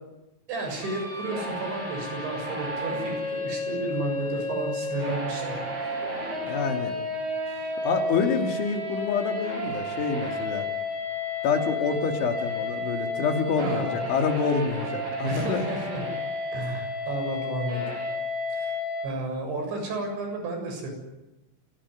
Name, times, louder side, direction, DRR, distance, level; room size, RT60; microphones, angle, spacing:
voice 1, 0.5-5.5 5.8-5.9 13.6-14.0 15.2-16.0 16.5-17.9 18.5-18.8 19.0-20.9, right 2 dB, 75° right, 4 dB, 9.5 m, -32 dB
sound 1, 0.7-19.1, left 2 dB, 40° right, 8.1 m, -32 dB
voice 2, 6.4-7.0 7.5-10.7 11.4-15.6, left 5 dB, 90° left, 4 dB, 5.3 m, -27 dB
28.0 x 19.0 x 9.8 m, 1.0 s
omnidirectional pair, 5.3 m